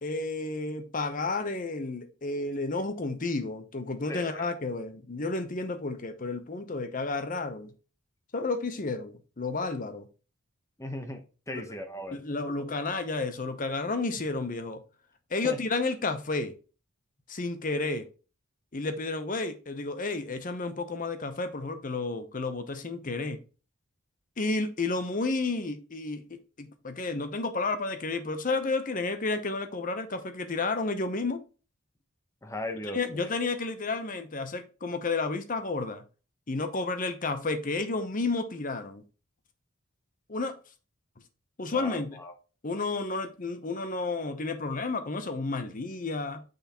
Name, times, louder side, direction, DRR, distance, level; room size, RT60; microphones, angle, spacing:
voice 1, 0.0-7.7 8.3-10.1 11.5-11.6 12.1-14.8 15.3-16.5 17.3-18.1 18.7-23.4 24.4-31.4 32.9-36.0 36.5-39.0 40.3-40.6 41.6-42.2 42.6-46.4, left 3 dB, 40° left, 0.8 m, -31 dB
voice 2, 4.1-4.5 10.8-12.2 15.4-15.6 32.4-33.0 41.7-42.3, left 1 dB, 15° left, 0.9 m, -38 dB
6.3 x 5.7 x 3.0 m
head